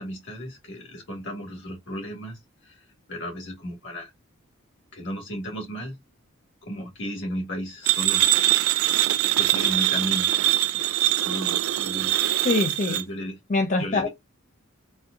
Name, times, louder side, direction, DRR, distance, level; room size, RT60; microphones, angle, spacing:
voice 1, 0.0-4.1 4.9-6.0 6.6-8.3 9.3-10.3 11.2-12.2 12.9-13.4 13.8-14.1, equal, 65° left, 1.5 m, -34 dB
sound 1, 7.9-13.0, right 15 dB, 75° right, 0.3 m, -23 dB
voice 2, 12.4-13.0 13.5-14.1, left 3 dB, 40° left, 0.5 m, -24 dB
4.2 x 2.3 x 2.4 m
head